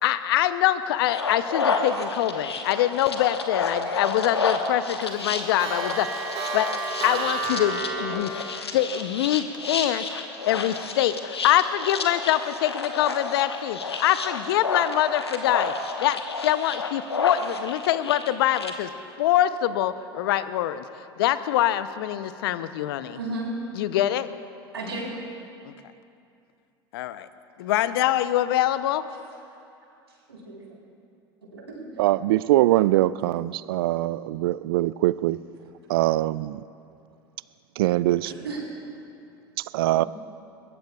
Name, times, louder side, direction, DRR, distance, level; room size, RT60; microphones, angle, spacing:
voice 1, 0.0-6.2 6.5-6.7 7.0-10.0 10.5-15.7 16.0-18.9 19.2-23.2 23.8-24.3 25.6-25.7 26.9-27.3 27.6-29.0, left 13 dB, 65° left, 13 dB, 0.7 m, -24 dB
sound 1, 1.0-18.7, left 4 dB, 90° left, 1.2 m, -30 dB
Clock, 3.4-3.9 4.3-4.4 4.7-8.2, right 4 dB, 45° right, 3.7 m, -31 dB
voice 2, 23.1-23.5 24.7-25.1 30.3-30.6 31.5-31.8 38.2-38.6 40.0-40.1, right 2 dB, 85° right, -3 dB, 4.2 m, -33 dB
voice 3, 32.0-35.4 35.9-36.6 37.8-38.3 39.7-40.0, right 16 dB, 65° right, 18 dB, 0.4 m, -22 dB
21.5 x 21.0 x 2.4 m, 2.6 s
hypercardioid pair, 75°, 13 cm